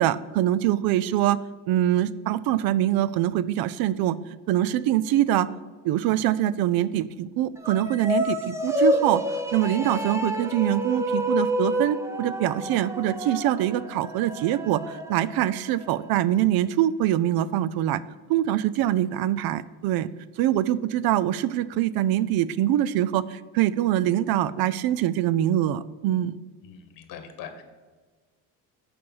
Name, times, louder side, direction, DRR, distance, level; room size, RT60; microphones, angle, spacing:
voice 1, 0.0-1.4 1.7-4.2 4.5-5.5 5.8-9.2 9.5-18.0 18.3-20.1 20.4-26.4, right 12 dB, 60° right, 17 dB, 0.5 m, -24 dB
sound 1, 7.6-16.1, left 1 dB, 5° right, 0.7 m, -29 dB
voice 2, 26.6-27.6, left 7 dB, 55° left, 8 dB, 1.4 m, -42 dB
6.8 x 5.2 x 7.1 m, 1.3 s
cardioid pair, 130°, 40 cm